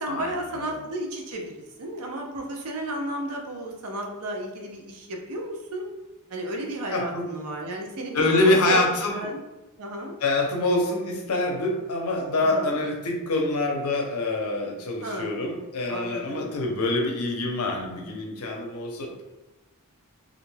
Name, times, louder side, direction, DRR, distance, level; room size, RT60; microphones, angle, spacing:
voice 1, 0.0-1.5 1.8-5.9 6.3-9.4 9.8-10.2 12.4-12.8 15.0-15.5 15.9-16.5, right 1 dB, 75° right, 1 dB, 0.5 m, -33 dB
voice 2, 6.9-7.2 8.1-9.2 10.2-19.2, left 2 dB, 70° left, 1 dB, 0.6 m, -25 dB
2.4 x 2.2 x 3.1 m, 1.1 s
head